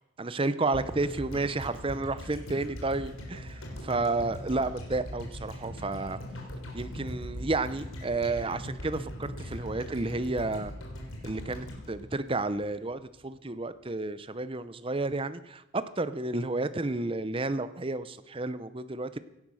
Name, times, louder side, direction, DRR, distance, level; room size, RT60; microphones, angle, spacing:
voice 1, 0.2-6.2 6.7-10.7 11.2-19.2, right 2 dB, 25° right, 13 dB, 0.6 m, -31 dB
sound 1, 0.7-12.9 13.2-13.3, equal, 70° left, 3.8 m, -40 dB
17.0 x 11.5 x 6.3 m, 0.89 s
head